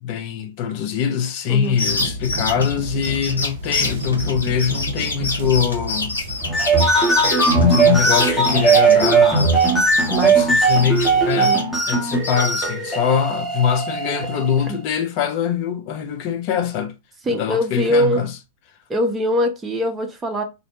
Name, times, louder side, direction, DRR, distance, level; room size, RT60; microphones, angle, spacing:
voice 1, 0.0-6.2 7.6-9.6 10.2-16.9 17.3-18.3, left 8 dB, 45° left, 0.5 m, -23 dB
sound 1, 1.6-10.4 10.7-12.6, left 3 dB, 80° left, 0.9 m, -26 dB
sound 2, 1.9-11.3, right 1 dB, 55° right, 0.6 m, -32 dB
sound 3, 6.4-14.7, right 3 dB, 10° left, 0.8 m, -18 dB
voice 2, 10.1-10.5 11.4-11.6 14.7-14.8 17.3-18.2 18.9-20.4, equal, 15° right, 0.6 m, -22 dB
2.6 x 2.1 x 2.8 m
figure-of-eight pair, 100°, 0 cm